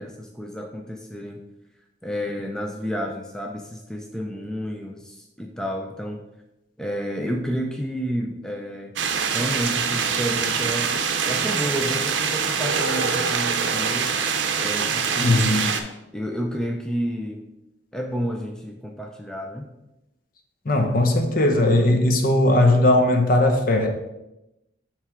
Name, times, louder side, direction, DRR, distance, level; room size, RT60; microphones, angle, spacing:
voice 1, 0.0-1.4 2.0-6.2 6.8-9.0 9.3-14.2 14.6-15.6 16.1-17.4 17.9-19.7, equal, 5° left, 1 dB, 0.4 m, -30 dB
sound 1, 9.0-15.8, right 6 dB, 75° right, 0.6 m, -24 dB
voice 2, 15.2-15.7 20.7-23.9, left 1 dB, 50° left, 4 dB, 0.8 m, -18 dB
8.8 x 3.3 x 3.6 m, 0.92 s
head